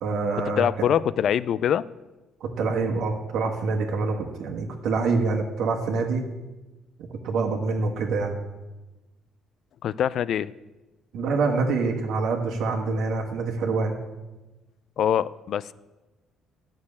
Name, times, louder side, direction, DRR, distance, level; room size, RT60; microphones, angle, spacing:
voice 1, 0.0-0.6 2.4-6.2 7.2-8.4 11.1-14.0, right 4 dB, 65° right, 1 dB, 1.4 m, -26 dB
voice 2, 0.6-1.8 9.8-10.5 15.0-15.7, left 9 dB, 45° left, 18 dB, 0.3 m, -24 dB
12.0 x 6.4 x 8.5 m, 1.1 s
cardioid pair, 175°, 0 cm